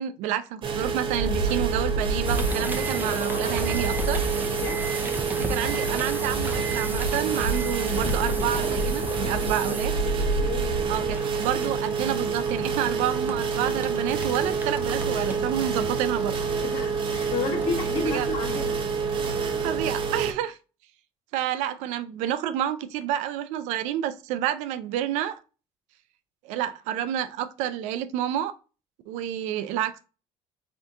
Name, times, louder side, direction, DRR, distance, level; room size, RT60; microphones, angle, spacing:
voice 1, 0.0-4.2 5.3-9.9 10.9-16.4 18.0-18.3 19.6-20.6 21.3-25.4 26.4-28.5 29.1-30.0, right 11 dB, 85° right, 0.4 m, -29 dB
sound 1, 0.6-20.3, right 5 dB, 45° right, 0.7 m, -28 dB
sound 2, 1.1-11.1, right 2 dB, 80° left, 2.0 m, -30 dB
sound 3, 2.2-17.1 17.6-19.0, right 3 dB, 15° right, 0.6 m, -36 dB
voice 2, 4.5-5.2 9.2-9.8 10.2-11.2 16.5-18.8, left 4 dB, 55° left, 1.4 m, -33 dB
3.6 x 2.6 x 3.4 m
cardioid pair, 100°, 12 cm